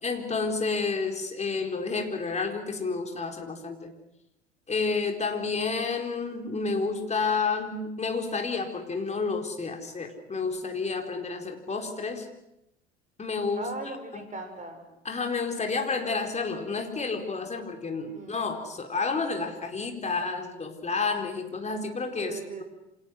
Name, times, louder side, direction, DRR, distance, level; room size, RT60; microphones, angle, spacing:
voice 1, 0.0-3.9 4.7-12.3 13.2-14.2 15.0-22.4, left 4 dB, 20° left, 4 dB, 4.4 m, -30 dB
voice 2, 13.6-14.8 18.0-18.4 22.2-22.6, right 3 dB, 25° right, 6 dB, 6.6 m, -38 dB
28.5 x 27.0 x 6.4 m, 0.85 s
figure-of-eight pair, 70°, 33 cm